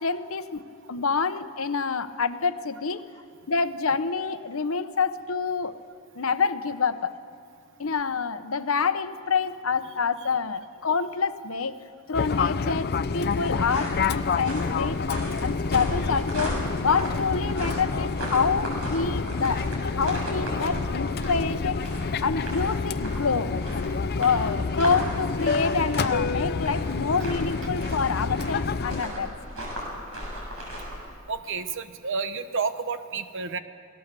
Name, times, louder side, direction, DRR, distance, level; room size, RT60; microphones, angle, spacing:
voice 1, 0.0-3.0 3.5-5.8 6.2-7.1 7.8-11.8 12.1-15.0 15.4-21.8 22.2-23.5 24.2-29.3, left 5 dB, 70° left, 11 dB, 0.9 m, -27 dB
Fixed-wing aircraft airplane, 12.1-29.0, left 4 dB, 50° left, 0.6 m, -28 dB
sound 1, 13.0-31.0, equal, 80° right, 7.3 m, -37 dB
voice 2, 31.3-33.6, right 5 dB, 65° right, 10 dB, 1.1 m, -30 dB
28.5 x 19.0 x 6.9 m, 2.3 s
head